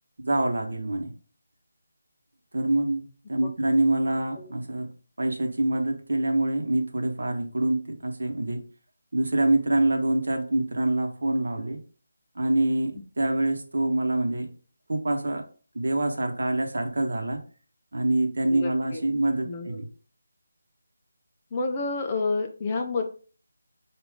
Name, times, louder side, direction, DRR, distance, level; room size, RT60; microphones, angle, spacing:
voice 1, 0.2-1.1 2.5-8.6 9.1-11.8 12.3-14.5 14.9-15.4 15.7-17.4 17.9-19.9, right 2 dB, 70° right, 4 dB, 0.9 m, -26 dB
voice 2, 18.4-19.0 19.4-19.8 21.5-23.0, left 3 dB, 20° left, 4 dB, 0.4 m, -29 dB
4.9 x 2.4 x 3.5 m, 0.39 s
figure-of-eight pair, 175°, 0 cm